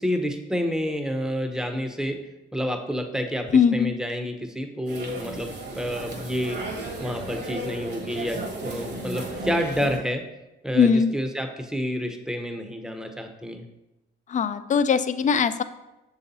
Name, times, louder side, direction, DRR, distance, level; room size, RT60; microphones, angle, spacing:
voice 1, 0.0-2.2 2.5-6.6 7.0-10.2 10.6-13.7, equal, 5° right, 6 dB, 0.7 m, -29 dB
voice 2, 3.5-3.9 10.8-11.1 14.3-15.6, left 6 dB, 40° left, 12 dB, 0.4 m, -20 dB
sound 1, 4.9-10.0, right 2 dB, 55° right, 1.3 m, -34 dB
6.5 x 4.0 x 4.0 m, 0.97 s
cardioid pair, 90°, 20 cm